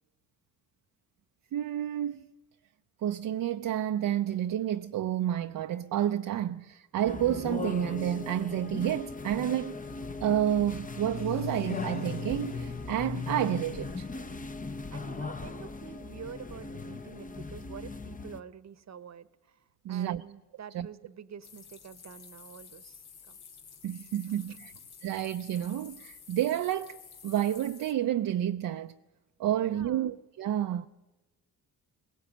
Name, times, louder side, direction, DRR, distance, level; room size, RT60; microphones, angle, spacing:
voice 1, 1.5-2.2 3.0-9.8 10.2-14.1 19.8-20.2 20.7-20.9 23.8-24.7 25.0-28.9 29.4-30.9, right 11 dB, 60° right, 0.6 m, -30 dB
sound 1, 7.1-18.4, left 3 dB, 20° left, 0.8 m, -39 dB
sound 2, 8.9-14.0, left 5 dB, 45° left, 1.3 m, -40 dB
voice 2, 14.9-23.4 24.3-24.6 29.6-30.2, right 7 dB, 45° right, 1.0 m, -48 dB
sound 3, 21.4-27.9, left 6 dB, 80° left, 2.0 m, -51 dB
19.5 x 17.5 x 8.6 m
cardioid pair, 75°, 37 cm